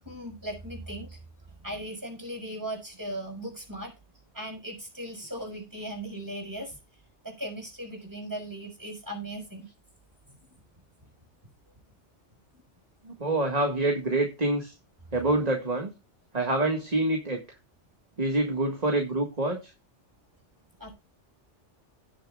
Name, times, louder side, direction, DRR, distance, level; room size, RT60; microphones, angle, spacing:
voice 1, 0.0-1.2 1.6-3.9 4.3-6.8 7.2-9.7 10.3-10.4 20.8-20.9, right 1 dB, 15° right, 1 dB, 6.1 m, -38 dB
voice 2, 13.1-14.7 15.1-15.9 16.3-17.4 18.2-19.7, right 2 dB, 35° right, 3 dB, 1.8 m, -26 dB
17.5 x 7.3 x 2.4 m, 0.28 s
omnidirectional pair, 1.2 m